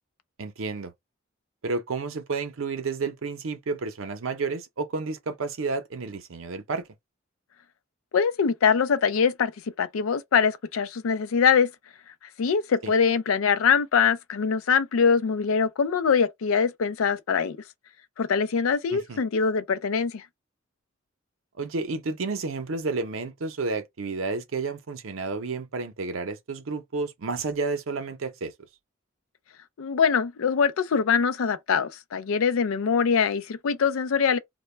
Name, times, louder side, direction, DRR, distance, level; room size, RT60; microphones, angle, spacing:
voice 1, 0.4-0.9 1.6-6.9 12.8-12.9 18.9-19.2 21.6-28.5, right 4 dB, 75° right, 0.6 m, -31 dB
voice 2, 8.1-9.5 9.8-11.7 12.4-17.6 18.2-20.2 29.8-34.4, left 6 dB, 90° left, 0.4 m, -23 dB
2.1 x 2.1 x 3.1 m
head